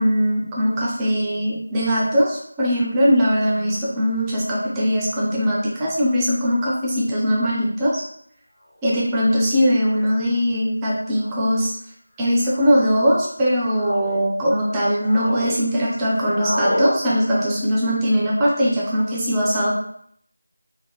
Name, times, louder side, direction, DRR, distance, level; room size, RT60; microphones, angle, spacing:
voice 1, 0.0-8.0 8.8-11.7 12.2-19.7, equal, 10° right, -6 dB, 0.4 m, -20 dB
sound 1, 8.8-8.9 9.9-10.2 11.1-11.5 12.4-12.9 13.5-14.2 14.7-15.5 15.8-16.9, equal, 35° left, 0.7 m, -30 dB
3.6 x 2.0 x 2.3 m, 0.67 s
figure-of-eight pair, 175°, 0 cm